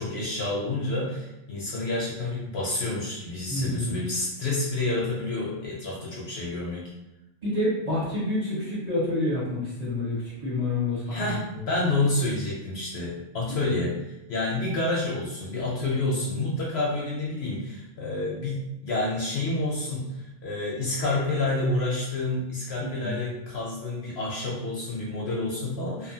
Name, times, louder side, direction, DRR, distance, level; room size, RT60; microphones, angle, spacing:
voice 1, 0.0-6.9 11.1-26.1, left 2 dB, 65° left, -4 dB, 0.7 m, -29 dB
voice 2, 3.5-4.0 7.4-11.6 13.5-13.7 15.8-16.2 22.8-23.2, left 1 dB, 35° right, -9 dB, 0.9 m, -29 dB
2.6 x 2.3 x 2.6 m, 0.92 s
omnidirectional pair, 1.4 m